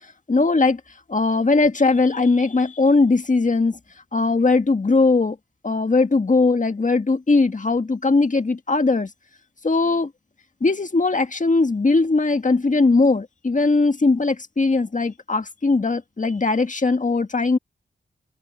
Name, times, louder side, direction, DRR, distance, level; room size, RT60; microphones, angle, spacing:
voice 1, 0.3-0.8 1.1-3.8 4.1-5.4 5.6-9.1 9.6-10.1 10.6-17.6, left 3 dB, 40° left, 1.8 m, -19 dB
cardioid pair, 55°, 20 cm